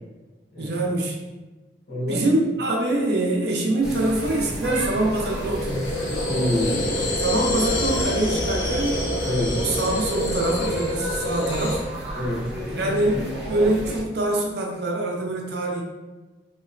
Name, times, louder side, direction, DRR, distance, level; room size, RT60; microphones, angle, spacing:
voice 1, 0.6-1.2 2.1-6.1 7.2-9.1 9.3-11.8 12.7-15.8, right 1 dB, 65° right, -1 dB, 0.5 m, -24 dB
voice 2, 1.9-2.2 6.3-7.1 9.2-9.6 12.2-12.5, left 1 dB, 70° left, -6 dB, 0.9 m, -26 dB
sound 1, 3.8-14.0, right 1 dB, 5° right, 0.5 m, -32 dB
sound 2, 4.4-11.8, left 1 dB, 85° left, 0.6 m, -27 dB
2.9 x 2.1 x 2.4 m, 1.2 s
head